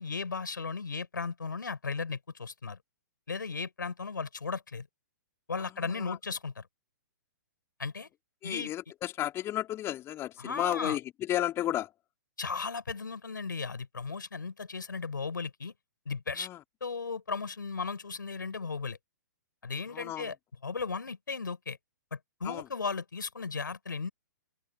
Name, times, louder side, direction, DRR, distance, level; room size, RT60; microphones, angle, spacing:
voice 1, 0.0-2.8 3.3-4.9 5.5-6.6 7.8-8.1 8.4-8.7 10.4-11.0 12.4-15.7 16.1-16.5 16.8-19.0 19.6-20.4 20.6-21.8 22.1-24.1, left 4 dB, 85° left, 5.3 m, -36 dB
voice 2, 5.6-6.2 8.4-11.9 16.4-16.6 19.9-20.3 22.4-22.7, left 13 dB, 25° left, 4.0 m, -33 dB
hypercardioid pair, 125°, 10 cm